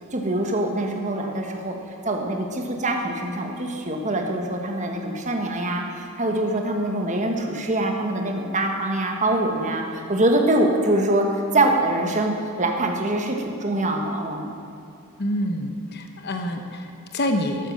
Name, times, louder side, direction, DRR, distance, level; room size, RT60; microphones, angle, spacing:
voice 1, 0.1-1.7 2.0-14.5, right 1 dB, 35° right, 2 dB, 1.3 m, -24 dB
voice 2, 15.2-17.7, left 1 dB, 45° left, 4 dB, 1.0 m, -27 dB
12.5 x 8.7 x 6.6 m, 2.7 s
head